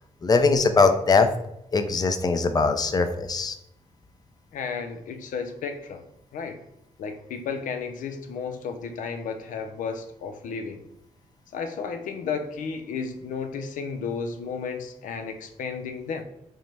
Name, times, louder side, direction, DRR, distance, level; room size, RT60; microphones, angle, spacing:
voice 1, 0.2-1.3 1.7-3.5, left 4 dB, 30° left, 0.5 m, -21 dB
voice 2, 4.5-6.0 6.3-6.6 7.0-10.8 11.5-16.2, left 5 dB, 90° left, 0.4 m, -33 dB
5.3 x 2.0 x 3.3 m
cardioid pair, 85°, 13 cm